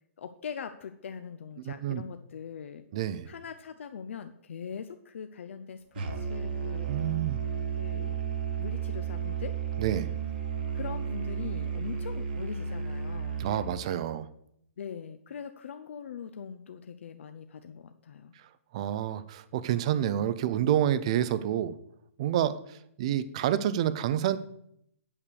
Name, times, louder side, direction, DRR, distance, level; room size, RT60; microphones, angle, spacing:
voice 1, 0.2-2.8 3.3-6.9 7.7-9.6 10.7-13.5 14.8-18.3, left 7 dB, 55° left, 9 dB, 0.6 m, -42 dB
voice 2, 1.6-2.0 2.9-3.3 6.9-7.4 9.8-10.1 13.4-14.3 18.7-21.8 22.2-24.4, right 11 dB, 25° right, 15 dB, 0.4 m, -28 dB
Musical instrument, 6.0-13.8, right 7 dB, 40° right, 1.2 m, -33 dB
8.8 x 6.3 x 6.8 m, 0.74 s
hypercardioid pair, 180°, 8 cm